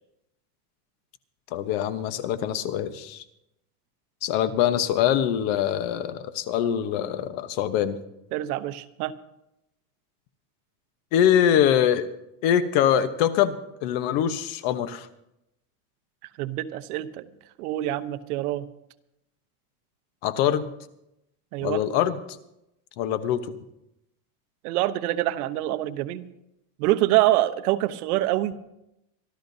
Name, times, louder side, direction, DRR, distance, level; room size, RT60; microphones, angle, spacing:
voice 1, 1.5-3.2 4.2-8.0 11.1-12.1 12.4-15.1 20.2-20.7 21.6-22.2 23.0-23.5, left 10 dB, 55° left, 11 dB, 1.1 m, -23 dB
voice 2, 8.3-9.1 16.4-17.2 17.6-18.6 21.5-21.8 24.6-26.2 26.8-28.5, right 15 dB, 75° right, 11 dB, 1.0 m, -25 dB
26.0 x 12.5 x 2.7 m, 0.84 s
supercardioid pair, 155°, 45 cm